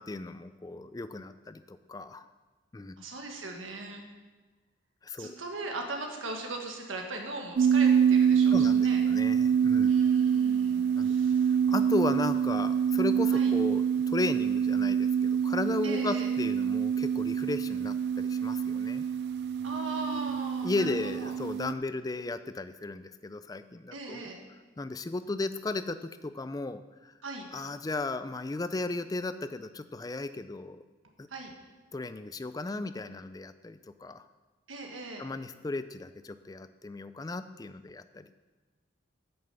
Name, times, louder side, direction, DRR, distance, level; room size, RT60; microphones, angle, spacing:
voice 1, 0.0-2.3 2.7-3.0 5.0-5.4 8.5-9.9 11.0-11.1 11.7-19.1 20.6-24.3 24.8-27.1 27.5-30.8 31.2-31.3 31.9-34.2 35.2-38.3, left 2 dB, 20° left, 12 dB, 0.3 m, -35 dB
voice 2, 3.0-4.0 5.2-9.0 9.8-11.5 13.3-13.5 15.8-16.3 19.6-21.3 23.9-24.4 27.2-27.5 31.3-31.5 34.7-35.3, right 2 dB, 90° right, 2 dB, 1.6 m, -39 dB
sound 1, 7.6-21.7, right 7 dB, 55° right, 0.3 m, -26 dB
8.8 x 6.6 x 6.9 m, 1.3 s
head